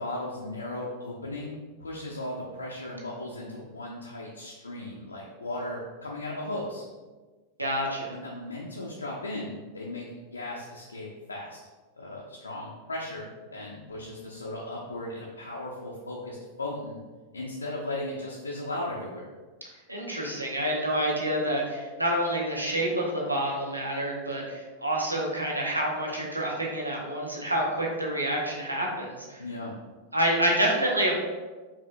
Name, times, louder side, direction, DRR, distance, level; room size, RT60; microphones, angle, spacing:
voice 1, 0.0-6.8 8.1-10.1 10.3-11.6 12.0-17.0 17.3-19.3 29.4-29.7, left 1 dB, 80° left, -4 dB, 0.5 m, -36 dB
voice 2, 7.6-8.2 19.9-29.4 30.1-31.1, right 1 dB, 85° right, -2 dB, 0.8 m, -28 dB
4.9 x 2.7 x 2.6 m, 1.3 s
figure-of-eight pair, 90°, 0 cm